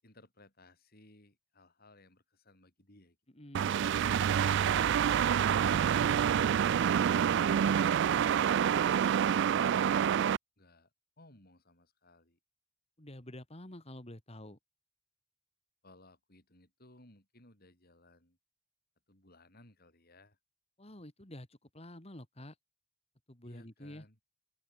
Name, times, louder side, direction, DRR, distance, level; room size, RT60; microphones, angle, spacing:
voice 1, 0.0-3.2 10.6-10.9 11.2-12.4 15.8-18.4 19.1-20.4 23.4-24.2, left 1 dB, 45° left, 6.9 m, -61 dB
voice 2, 3.3-3.9 4.3-4.8 13.0-14.6 20.8-22.5 23.3-24.1, left 1 dB, 30° left, 2.9 m, -49 dB
sound 1, 3.5-10.4, right 8 dB, 55° right, 0.3 m, -27 dB
open air
head